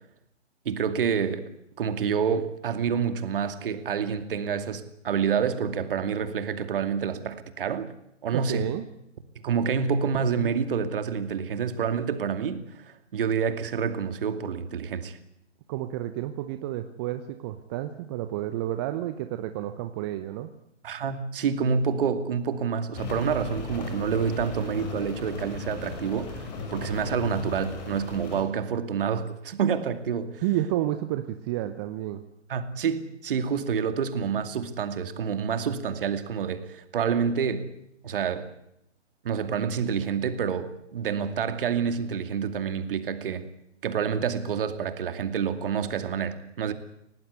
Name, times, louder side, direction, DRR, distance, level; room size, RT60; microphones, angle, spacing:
voice 1, 0.7-1.5 1.8-7.9 8.2-8.7 9.4-15.2 20.8-30.4 32.5-37.7 38.0-38.5 39.2-43.4 43.8-46.7, right 6 dB, 45° right, 9 dB, 2.5 m, -28 dB
voice 2, 8.3-8.8 15.7-20.5 30.4-32.2, right 13 dB, 20° right, 9 dB, 0.9 m, -30 dB
Rain, 22.9-28.4, left 5 dB, 35° left, 6.7 m, -37 dB
25.5 x 18.5 x 8.2 m, 0.79 s
figure-of-eight pair, 135°, 37 cm